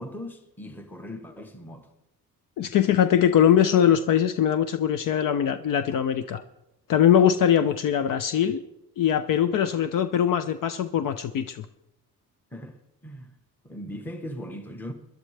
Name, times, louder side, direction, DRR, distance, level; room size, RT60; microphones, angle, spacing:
voice 1, 0.0-1.9 12.5-13.3 13.6-14.9, equal, 5° left, 1.0 m, -39 dB
voice 2, 2.6-6.4 6.9-8.6 9.0-11.7, left 9 dB, 65° left, 0.7 m, -22 dB
21.5 x 11.5 x 3.4 m
cardioid pair, 150°, 35 cm